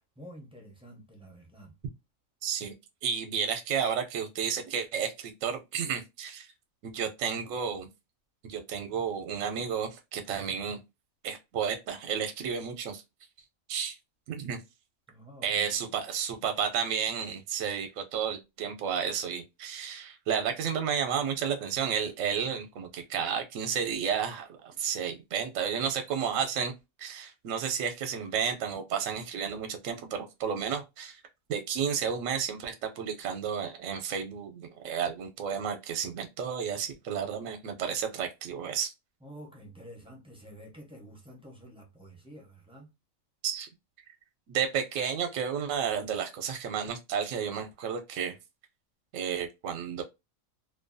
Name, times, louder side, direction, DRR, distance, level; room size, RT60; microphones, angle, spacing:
voice 1, 0.2-1.8 15.1-15.8 24.7-24.8 39.2-42.9, equal, 10° right, 0.4 m, -49 dB
voice 2, 2.4-2.7 3.0-6.5 6.8-7.9 8.4-10.8 11.2-13.0 13.7-14.0 14.3-14.6 15.4-26.7 27.0-31.2 31.5-38.9 43.4-43.7 44.5-48.4 49.1-50.0, right 7 dB, 80° right, 1.0 m, -32 dB
2.5 x 2.2 x 2.4 m
omnidirectional pair, 1.4 m